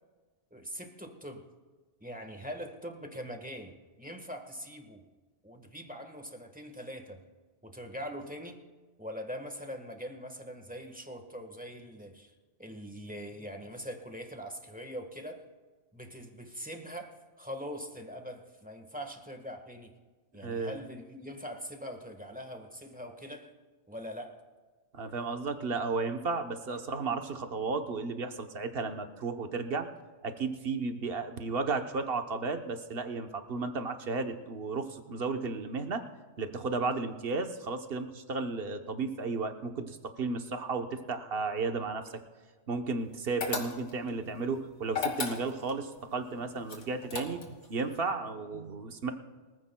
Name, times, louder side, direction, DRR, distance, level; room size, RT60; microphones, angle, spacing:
voice 1, 0.5-1.5 2.0-5.0 5.4-7.2 7.6-8.6 9.0-12.3 12.6-15.5 15.9-20.0 20.3-23.5 23.9-24.4, equal, 5° right, 4 dB, 1.3 m, -42 dB
voice 2, 20.4-20.8 24.9-29.9 30.2-36.0 36.4-42.1 42.7-49.1, right 4 dB, 55° right, 6 dB, 1.2 m, -34 dB
sound 1, 43.4-44.1 44.9-45.8 46.7-47.7, left 5 dB, 75° left, 2.0 m, -34 dB
23.5 x 15.0 x 2.3 m, 1.4 s
omnidirectional pair, 1.2 m